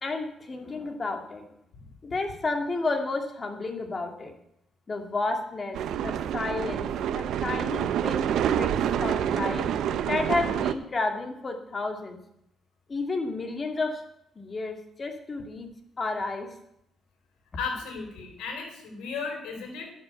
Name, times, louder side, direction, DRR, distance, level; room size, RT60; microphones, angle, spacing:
voice 1, 0.0-1.4 2.0-4.3 4.9-5.8 6.0-6.9 7.2-8.3 8.6-8.7 9.0-9.6 10.0-12.2 12.9-14.0 14.4-15.7 16.0-16.5, left 3 dB, 35° left, 4 dB, 2.3 m, -31 dB
sound 1, 5.7-10.7, right 9 dB, 80° right, 0.7 m, -27 dB
voice 2, 17.5-19.9, left 5 dB, 90° left, 3 dB, 3.4 m, -35 dB
11.5 x 6.6 x 8.2 m, 0.77 s
cardioid pair, 90°, 0 cm